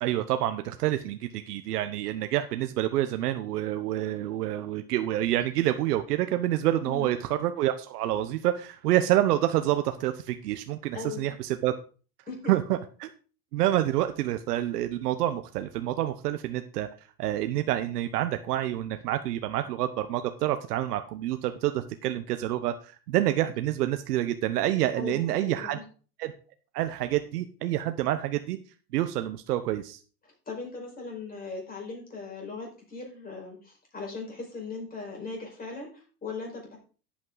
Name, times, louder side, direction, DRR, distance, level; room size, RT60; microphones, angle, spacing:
voice 1, 0.0-11.7 12.5-13.1 13.5-16.9 17.2-25.8 26.2-26.3 26.7-28.6 28.9-30.0, right 13 dB, 90° right, 9 dB, 1.1 m, -28 dB
voice 2, 10.9-11.4 12.3-12.5 25.0-25.9 30.5-36.8, left 4 dB, 20° left, 0 dB, 5.1 m, -38 dB
11.0 x 8.6 x 4.0 m, 0.38 s
supercardioid pair, 140°, 46 cm